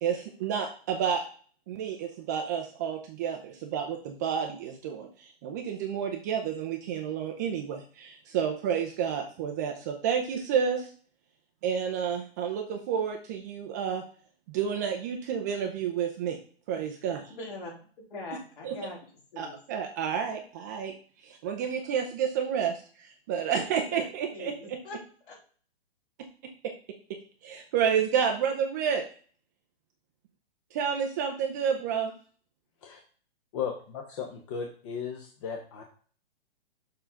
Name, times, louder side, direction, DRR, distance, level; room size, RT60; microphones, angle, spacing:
voice 1, 0.0-1.2 1.7-10.9 11.6-14.0 14.5-16.4 16.7-17.3 18.6-18.7 19.4-20.9 21.2-24.8 27.4-29.0 30.7-32.1, right 7 dB, 15° right, 2 dB, 0.5 m, -30 dB
voice 2, 17.3-17.7 18.0-19.6 23.9-25.0 25.3-25.4, left 2 dB, 55° left, -2 dB, 4.0 m, -42 dB
voice 3, 33.5-35.8, left 6 dB, 30° left, 3 dB, 0.9 m, -36 dB
7.0 x 3.7 x 5.7 m, 0.43 s
hypercardioid pair, 160°, 32 cm